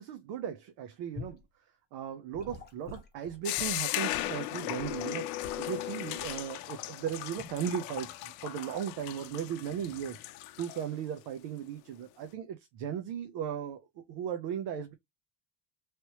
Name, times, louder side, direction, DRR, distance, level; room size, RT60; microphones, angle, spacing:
voice 1, 0.0-1.4 1.9-10.2 10.6-14.9, right 9 dB, 65° right, 0.8 m, -37 dB
Gurgling / Sink (filling or washing) / Liquid, 1.2-1.4 2.3-5.0 5.4-5.7 6.2-6.5 7.4-7.6, left 4 dB, 20° left, 0.9 m, -47 dB
sound 1, 3.4-10.8, left 15 dB, 85° left, 0.6 m, -37 dB
3.2 x 3.0 x 2.9 m
cardioid pair, 135°, 47 cm